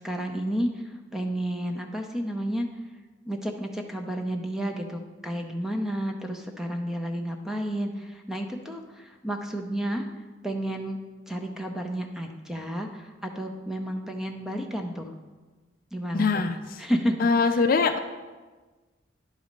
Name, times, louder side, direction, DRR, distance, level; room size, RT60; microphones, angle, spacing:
voice 1, 0.0-2.7 3.2-10.1 10.4-11.0 11.3-15.1 15.9-16.5 16.8-17.1, equal, ahead, 3 dB, 0.5 m, -31 dB
voice 2, 16.1-16.8 17.2-18.0, left 4 dB, 45° left, 7 dB, 0.4 m, -23 dB
10.5 x 4.1 x 5.1 m, 1.3 s
head